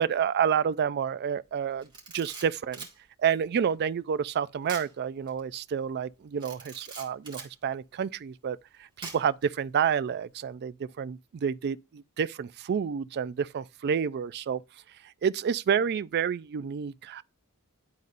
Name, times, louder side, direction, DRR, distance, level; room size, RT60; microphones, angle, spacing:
voice 1, 0.0-1.9 2.1-2.9 3.2-8.6 9.0-14.6 15.2-17.2, right 7 dB, 50° right, 0.3 m, -29 dB
Camera, 1.8-3.0 4.7-4.9 5.3-5.4 6.4-7.5 9.0-9.4, right 4 dB, 20° right, 1.9 m, -42 dB
10.5 x 4.0 x 2.5 m
head